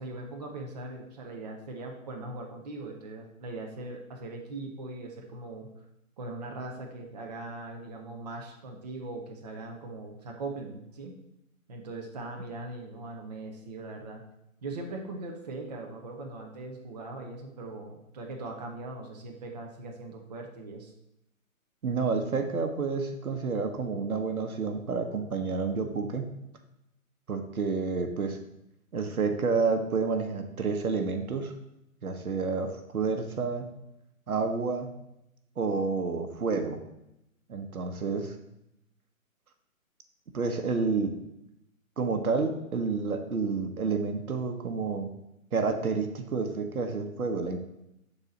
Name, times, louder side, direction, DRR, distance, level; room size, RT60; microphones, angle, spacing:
voice 1, 0.0-5.7 6.2-11.1 11.7-14.2 14.6-20.9, right 2 dB, 30° right, 1 dB, 0.7 m, -40 dB
voice 2, 21.8-26.2 27.3-28.4 28.9-31.5 32.0-33.7 34.3-34.9 35.6-36.8 37.5-38.3 40.3-41.1 42.0-45.1 45.5-47.6, right 4 dB, 85° right, 6 dB, 1.1 m, -29 dB
7.1 x 4.1 x 4.0 m, 0.85 s
hypercardioid pair, 155°, 42 cm